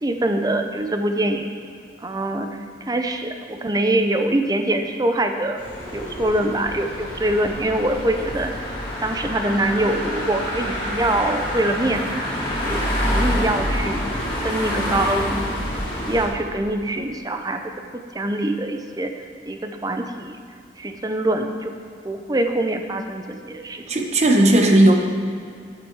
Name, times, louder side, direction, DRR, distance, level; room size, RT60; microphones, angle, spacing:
voice 1, 0.0-1.5 2.0-2.6 2.9-5.6 5.9-8.6 9.0-12.1 12.5-14.0 14.4-17.6 18.1-19.1 19.5-20.4 20.8-21.8 22.0-23.8, right 1 dB, 20° right, 6 dB, 0.6 m, -24 dB
sound 1, 5.6-16.3, equal, 25° left, 2.2 m, -27 dB
voice 2, 23.9-24.9, right 1 dB, 35° right, 2 dB, 1.0 m, -15 dB
10.0 x 9.1 x 4.7 m, 2.3 s
head